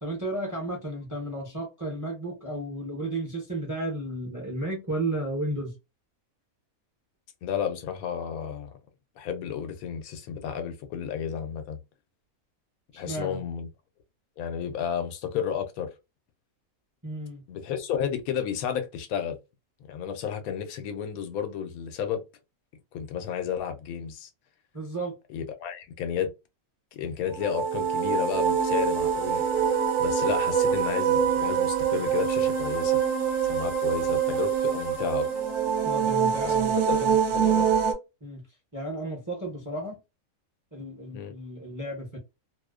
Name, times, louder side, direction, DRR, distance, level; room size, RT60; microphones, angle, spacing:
voice 1, 0.0-5.7 12.9-13.4 17.0-17.4 24.7-25.1 35.8-37.2 38.2-38.4 38.7-40.0 40.7-42.2, right 1 dB, 20° right, 0.5 m, -33 dB
voice 2, 7.4-8.7 9.2-11.8 12.9-13.7 14.4-15.9 17.5-19.4 19.9-22.2 22.9-24.3 25.3-26.3 26.9-29.4 30.0-33.0 33.4-35.3 36.4-36.5 36.9-37.7 41.1-41.3, left 8 dB, 90° left, 1.1 m, -32 dB
sound 1, 27.3-37.9, right 7 dB, 60° right, 0.9 m, -25 dB
2.6 x 2.1 x 2.3 m
omnidirectional pair, 1.5 m